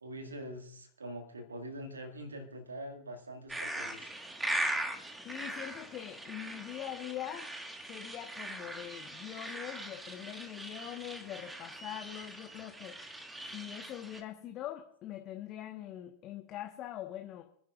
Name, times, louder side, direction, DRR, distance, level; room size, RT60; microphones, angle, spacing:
voice 1, 0.0-4.1, equal, 75° right, 5 dB, 2.0 m, -44 dB
sound 1, 3.5-14.2, right 1 dB, 10° right, 1.5 m, -40 dB
voice 2, 5.2-7.5 7.9-13.0 13.5-17.4, left 12 dB, 35° left, 5 dB, 1.1 m, -43 dB
26.0 x 10.0 x 2.4 m, 0.63 s
figure-of-eight pair, 90°, 0 cm